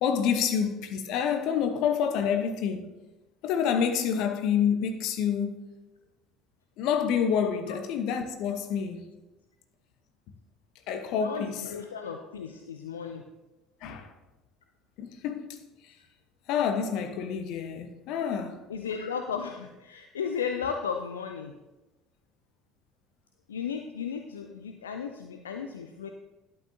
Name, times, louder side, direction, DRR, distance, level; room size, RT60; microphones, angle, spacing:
voice 1, 0.0-2.9 3.4-5.6 6.8-9.0 10.9-11.6 13.8-14.1 15.0-15.6 16.5-18.7, left 7 dB, 55° left, 1.0 m, -28 dB
voice 2, 11.2-13.3 18.7-21.6 23.5-26.1, left 6 dB, 75° left, 0.4 m, -35 dB
11.5 x 8.8 x 2.8 m
figure-of-eight pair, 60°, 0 cm